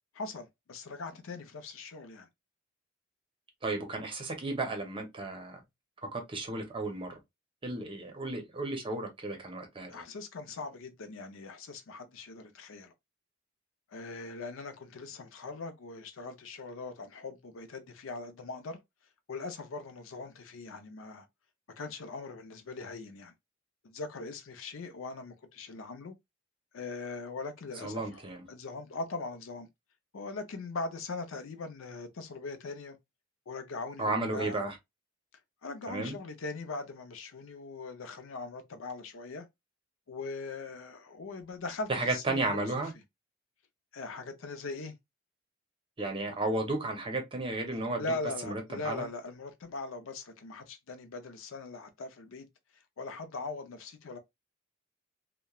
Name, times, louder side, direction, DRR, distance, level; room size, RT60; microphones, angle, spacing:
voice 1, 0.2-2.3 9.9-12.9 13.9-18.8 19.3-21.3 21.8-23.3 23.8-26.2 26.7-29.7 30.1-33.0 33.5-34.6 35.6-39.5 40.1-42.7 43.9-44.9 48.0-52.5 53.0-54.2, left 3 dB, 80° left, 0.5 m, -40 dB
voice 2, 3.6-5.6 6.1-7.2 7.6-10.0 27.8-28.4 34.0-34.8 35.9-36.2 41.9-42.9 46.0-48.0 48.4-49.1, right 2 dB, 25° right, 0.7 m, -33 dB
2.9 x 2.1 x 2.2 m
head